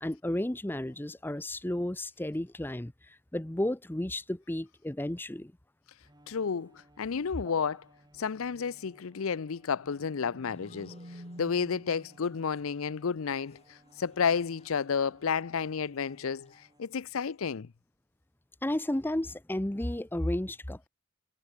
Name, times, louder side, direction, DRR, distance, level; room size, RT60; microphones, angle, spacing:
voice 1, 0.0-2.9 3.3-5.5 18.6-20.9, left 1 dB, 10° left, 0.7 m, -32 dB
Bowed string instrument, 6.0-17.3, right 1 dB, 20° right, 5.8 m, -62 dB
voice 2, 6.3-6.7 7.0-7.9 8.1-17.7, left 6 dB, 75° left, 0.5 m, -31 dB
sound 1, 9.8-12.3, equal, 45° right, 6.5 m, -49 dB
sound 2, 10.5-17.4, left 3 dB, 30° left, 5.6 m, -64 dB
head